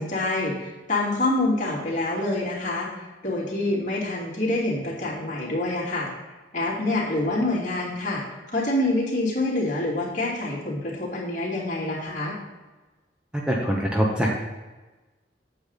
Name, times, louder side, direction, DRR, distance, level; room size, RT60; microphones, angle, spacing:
voice 1, 0.0-2.9 3.2-6.1 6.5-8.2 8.5-12.4, left 2 dB, 40° left, -5 dB, 2.9 m, -26 dB
voice 2, 13.5-14.3, equal, 5° right, -2 dB, 0.9 m, -23 dB
8.6 x 7.7 x 4.1 m, 1.2 s
head